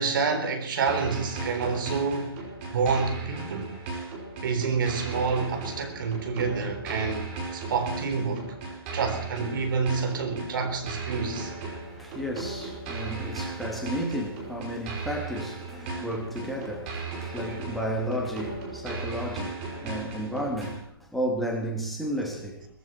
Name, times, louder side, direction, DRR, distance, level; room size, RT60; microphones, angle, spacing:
voice 1, 0.0-3.7 4.4-8.5 8.9-11.5 17.5-17.6, right 5 dB, 55° right, 4.0 m, -28 dB
sound 1, 0.9-20.9, right 4 dB, 30° right, 5.3 m, -36 dB
voice 2, 12.0-22.7, equal, ahead, 2.8 m, -33 dB
20.5 x 15.5 x 4.5 m
hypercardioid pair, 140°, 13 cm